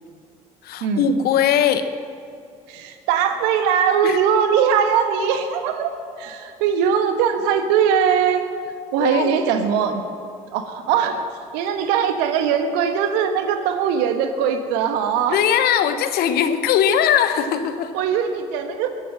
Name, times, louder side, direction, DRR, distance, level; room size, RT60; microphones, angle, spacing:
voice 1, 0.6-1.9 4.0-4.2 9.0-9.3 15.3-17.9, left 8 dB, 60° left, 10 dB, 1.1 m, -20 dB
voice 2, 2.7-5.9 6.2-8.4 8.9-10.0 10.5-11.2 11.5-15.4 17.9-18.9, right 7 dB, 70° right, 7 dB, 1.3 m, -20 dB
21.5 x 8.0 x 6.5 m, 2.4 s
hypercardioid pair, 55°, 18 cm